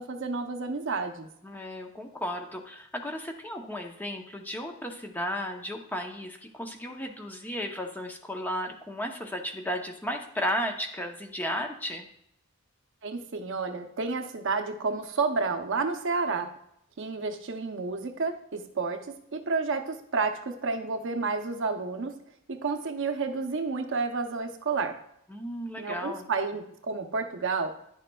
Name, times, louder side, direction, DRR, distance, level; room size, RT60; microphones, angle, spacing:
voice 1, 0.0-1.3 13.0-16.5 17.0-22.1 22.5-25.0 25.8-27.7, right 4 dB, 60° right, 6 dB, 0.7 m, -30 dB
voice 2, 1.4-12.1 25.3-26.3, equal, 10° left, 3 dB, 0.7 m, -34 dB
10.5 x 6.6 x 2.3 m, 0.75 s
head